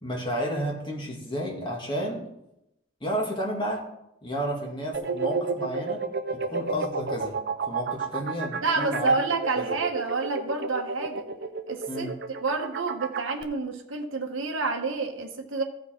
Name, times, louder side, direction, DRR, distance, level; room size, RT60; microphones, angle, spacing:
voice 1, 0.0-2.3 3.0-3.9 4.2-6.1 6.3-7.4 7.7-9.1 9.6-9.7 11.9-12.2, equal, 20° left, 1.9 m, -31 dB
sound 1, 4.9-13.4, right 4 dB, 50° right, 0.6 m, -31 dB
voice 2, 8.6-11.3 11.7-12.1 12.4-15.6, right 3 dB, 65° right, 1.2 m, -28 dB
15.0 x 5.1 x 4.4 m
head